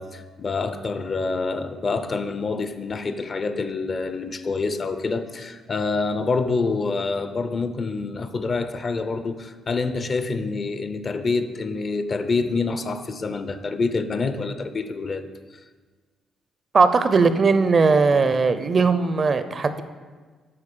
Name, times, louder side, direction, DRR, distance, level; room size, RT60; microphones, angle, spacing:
voice 1, 0.0-15.2, left 4 dB, 40° left, 0.5 m, -26 dB
voice 2, 16.7-19.8, right 4 dB, 40° right, 0.5 m, -19 dB
8.7 x 4.4 x 6.8 m
cardioid pair, 90°, 0 cm